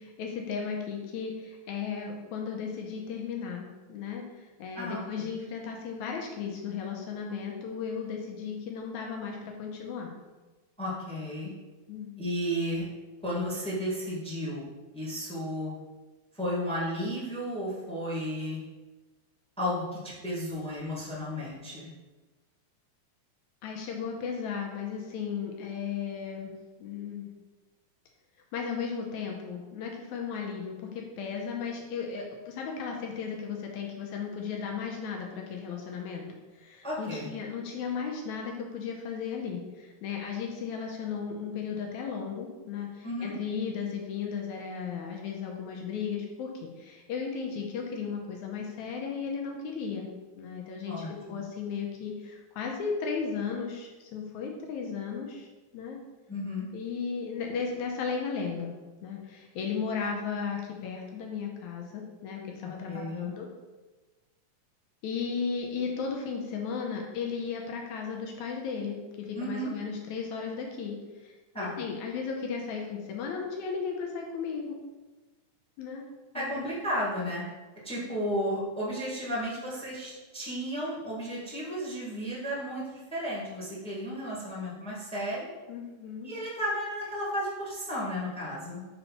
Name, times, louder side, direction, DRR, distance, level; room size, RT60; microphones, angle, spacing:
voice 1, 0.0-10.1 11.9-12.2 23.6-26.5 26.8-27.3 28.5-36.3 36.5-50.1 50.4-50.9 51.3-55.5 55.7-56.0 56.7-58.7 59.0-63.5 65.0-71.3 71.6-74.8 75.8-76.1 76.3-76.7 77.9-78.1 85.7-86.3, left 6 dB, 75° left, 1 dB, 2.1 m, -35 dB
voice 2, 10.8-11.5 12.2-12.8 13.2-14.7 14.9-15.7 16.3-18.6 19.6-21.9 36.8-37.3 43.0-43.3 50.9-51.4 56.3-56.7 62.6-63.3 69.3-69.7 71.5-71.8 76.3-77.4 77.8-85.5 86.2-88.8, equal, 5° left, -5 dB, 0.8 m, -33 dB
5.5 x 4.2 x 5.6 m, 1.2 s
omnidirectional pair, 3.6 m